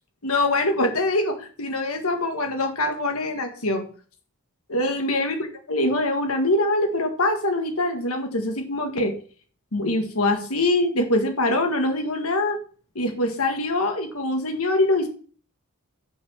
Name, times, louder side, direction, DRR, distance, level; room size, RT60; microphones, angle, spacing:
voice 1, 0.2-3.8 4.7-9.1 9.7-12.6 12.9-15.1, left 2 dB, 70° left, 5 dB, 1.7 m, -24 dB
6.2 x 5.9 x 6.2 m, 0.42 s
head